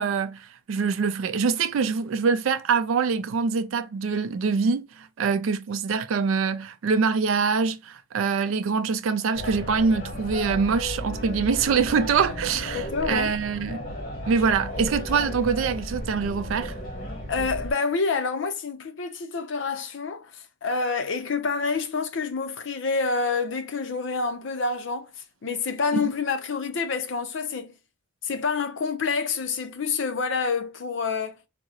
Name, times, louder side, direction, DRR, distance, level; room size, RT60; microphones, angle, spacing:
voice 1, 0.0-13.8 14.3-16.7 25.9-26.1, right 5 dB, 80° right, 0.4 m, -24 dB
sound 1, 9.3-17.7, equal, 40° left, 1.3 m, -34 dB
voice 2, 12.7-13.4 17.3-25.1 25.4-27.8 28.2-31.4, left 4 dB, 65° left, 0.5 m, -27 dB
3.6 x 2.0 x 2.8 m
head